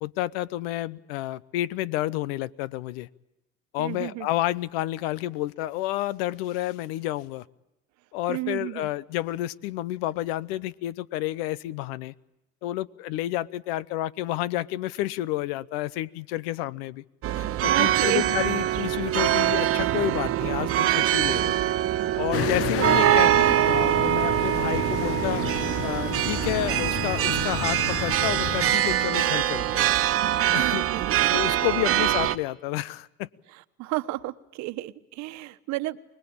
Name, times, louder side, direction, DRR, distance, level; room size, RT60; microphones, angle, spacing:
voice 1, 0.0-3.1 3.7-7.4 8.1-12.1 12.6-17.0 17.4-21.5 22.2-25.5 25.8-29.9 30.5-30.8 31.3-33.3, left 15 dB, 85° left, 20 dB, 0.9 m, -30 dB
voice 2, 3.8-4.3 8.3-8.9 17.7-18.3 22.8-22.9 30.6-31.2 31.5-31.6 33.8-36.0, right 18 dB, 70° right, 13 dB, 1.2 m, -32 dB
sound 1, 17.2-32.4, right 12 dB, 50° right, 1.3 m, -24 dB
sound 2, 22.3-28.7, left 10 dB, 50° left, 1.1 m, -32 dB
25.0 x 20.0 x 8.8 m, 0.92 s
supercardioid pair, 105°, 29 cm